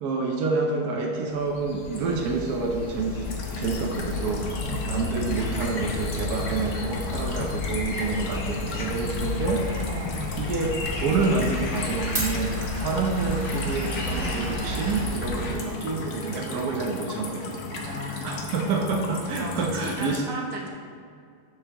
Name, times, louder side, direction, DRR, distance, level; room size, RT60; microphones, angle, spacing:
voice 1, 0.0-3.3 3.6-9.7 10.4-17.6 18.2-20.2, right 4 dB, 85° right, 0 dB, 0.8 m, -28 dB
sound 1, 1.3-15.6, left 3 dB, 60° left, 1.0 m, -32 dB
sound 2, 3.2-20.2, left 3 dB, 85° left, 0.6 m, -36 dB
voice 2, 7.2-7.8 9.8-10.2 17.7-18.6 19.4-20.7, right 1 dB, 55° right, -1 dB, 1.0 m, -36 dB
Glass, 9.5-15.8, right 1 dB, 30° right, 1.5 m, -38 dB
6.5 x 6.2 x 2.9 m, 2.3 s
omnidirectional pair, 2.4 m